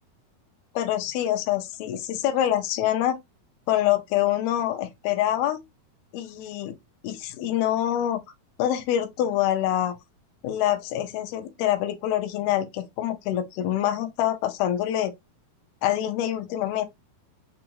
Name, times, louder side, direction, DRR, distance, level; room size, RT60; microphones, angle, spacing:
voice 1, 0.8-3.2 3.7-5.6 6.1-6.8 7.0-8.2 8.6-9.9 10.4-15.1 15.8-16.9, left 12 dB, 80° left, 2.6 m, -25 dB
6.1 x 2.4 x 2.9 m
omnidirectional pair, 4.5 m